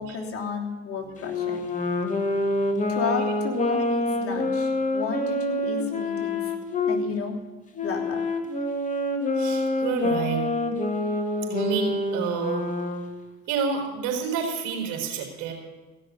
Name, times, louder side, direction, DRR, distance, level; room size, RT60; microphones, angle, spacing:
voice 1, 0.0-1.6 2.9-6.5 6.8-7.4 7.8-8.2, left 5 dB, 40° left, -1 dB, 3.3 m, -32 dB
Wind instrument woodwind instrument, 1.2-7.0 7.7-13.2, left 2 dB, 20° left, 2.0 m, -26 dB
voice 2, 1.8-2.9 9.3-10.4 11.5-12.7 13.5-15.5, right 6 dB, 65° right, 0 dB, 4.4 m, -30 dB
16.5 x 6.5 x 9.6 m, 1.2 s
supercardioid pair, 90°, 33 cm